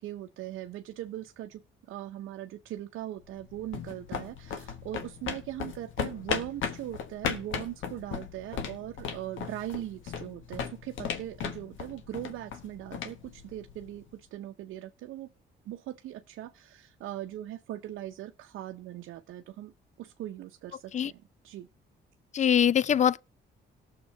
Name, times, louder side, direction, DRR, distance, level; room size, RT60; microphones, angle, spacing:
voice 1, 0.0-15.3 15.6-19.7 20.0-21.7, right 13 dB, 85° right, 0.7 m, -40 dB
sound 1, 3.3-14.1, left 7 dB, 80° left, 1.4 m, -37 dB
voice 2, 22.3-23.2, left 9 dB, 35° left, 0.4 m, -23 dB
18.0 x 6.7 x 3.3 m
cardioid pair, 90°, 20 cm